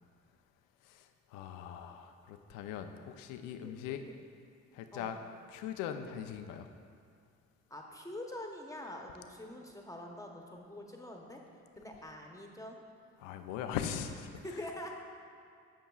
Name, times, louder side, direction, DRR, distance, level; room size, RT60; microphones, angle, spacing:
voice 1, 0.8-4.0 4.7-5.2 5.5-6.7 13.2-14.7, left 9 dB, 85° left, 7 dB, 0.5 m, -41 dB
voice 2, 7.7-11.4 11.7-12.8 14.4-14.9, left 1 dB, 10° left, 0 dB, 0.8 m, -45 dB
14.5 x 5.5 x 2.3 m, 2.3 s
supercardioid pair, 65°, 32 cm